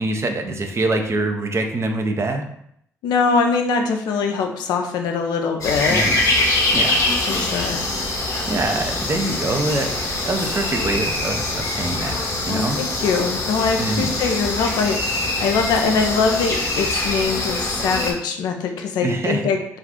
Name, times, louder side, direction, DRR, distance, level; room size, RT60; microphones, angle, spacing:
voice 1, 0.0-2.4 5.9-6.2 6.7-7.0 8.5-12.1 12.5-12.8 13.8-14.1 19.0-19.4, right 2 dB, 40° right, 4 dB, 0.5 m, -24 dB
voice 2, 3.0-6.1 7.3-7.8 12.5-19.6, left 5 dB, 75° left, 4 dB, 0.4 m, -22 dB
sound 1, 5.6-18.1, left 2 dB, 50° left, 0.9 m, -23 dB
2.4 x 2.3 x 3.6 m, 0.72 s
hypercardioid pair, 45°, 7 cm